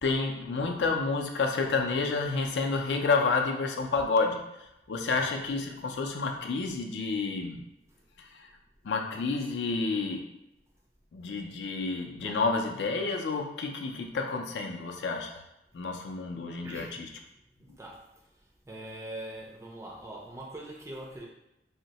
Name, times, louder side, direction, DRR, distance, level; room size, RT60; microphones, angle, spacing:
voice 1, 0.0-4.5 4.9-7.6 8.2-8.5 8.8-10.3 11.1-15.4 15.7-17.1, left 4 dB, 75° left, 3 dB, 0.4 m, -30 dB
voice 2, 16.6-16.9 17.8-18.0 18.7-21.3, right 1 dB, 15° right, -3 dB, 0.4 m, -42 dB
2.7 x 2.1 x 4.0 m, 0.86 s
head